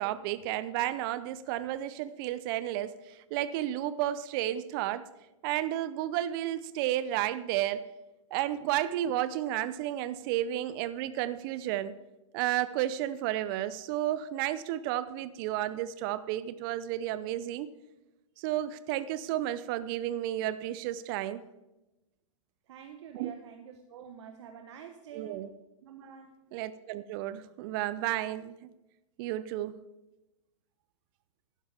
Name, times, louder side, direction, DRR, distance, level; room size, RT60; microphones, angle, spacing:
voice 1, 0.0-5.1 5.4-7.8 8.3-12.0 12.3-17.7 18.4-21.4 23.1-23.3 25.1-25.5 26.5-28.5 29.2-29.8, right 13 dB, 45° right, 15 dB, 0.6 m, -32 dB
voice 2, 22.7-25.4 25.8-26.4, right 8 dB, 60° right, 6 dB, 1.1 m, -47 dB
14.0 x 11.5 x 3.5 m, 1.0 s
hypercardioid pair, 110°, 17 cm